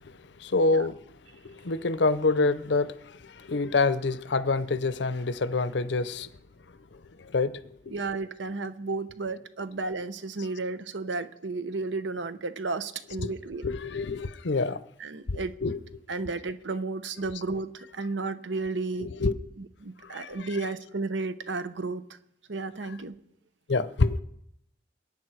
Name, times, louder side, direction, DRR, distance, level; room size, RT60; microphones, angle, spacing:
voice 1, 0.4-1.0 1.4-2.9 3.2-6.3 7.3-7.6 13.6-14.8 15.3-15.8 19.0-19.3 20.1-20.5 23.7-24.2, left 3 dB, 65° left, 0.7 m, -26 dB
voice 2, 7.9-13.7 15.0-15.5 16.1-19.1 19.6-22.2 22.5-23.2, right 3 dB, 70° right, 0.9 m, -33 dB
22.0 x 9.7 x 4.6 m
head